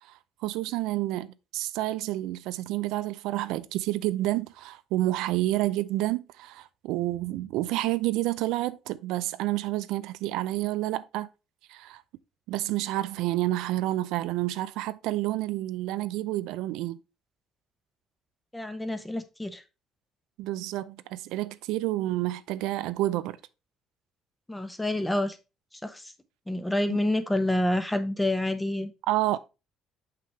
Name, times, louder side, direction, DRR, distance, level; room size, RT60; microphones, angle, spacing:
voice 1, 0.0-11.3 11.7-12.0 12.5-17.0 20.4-23.4 26.9-27.0 29.1-29.4, right 16 dB, 85° right, 0.4 m, -29 dB
voice 2, 18.5-19.6 24.5-25.4 25.7-26.1 26.5-28.9, left 1 dB, 10° left, 0.9 m, -28 dB
6.1 x 5.8 x 3.0 m
cardioid pair, 120°, 0 cm